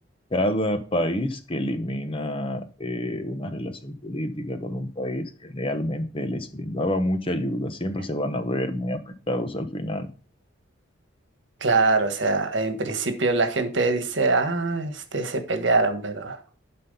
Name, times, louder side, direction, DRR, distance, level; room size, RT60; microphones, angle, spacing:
voice 1, 0.3-10.1, left 1 dB, 25° left, 9 dB, 0.8 m, -28 dB
voice 2, 11.6-16.4, right 3 dB, 65° right, 8 dB, 1.4 m, -23 dB
11.5 x 4.3 x 5.5 m, 0.38 s
head